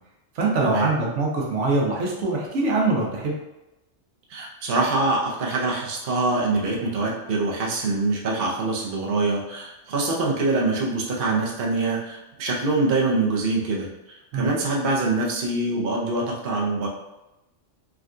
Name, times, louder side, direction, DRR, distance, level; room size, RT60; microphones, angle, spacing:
voice 1, 0.4-3.3 14.3-14.5, right 3 dB, 75° right, -2 dB, 1.0 m, -23 dB
voice 2, 4.3-16.9, right 3 dB, 55° right, -3 dB, 0.7 m, -24 dB
3.5 x 2.2 x 2.4 m, 0.97 s
omnidirectional pair, 1.3 m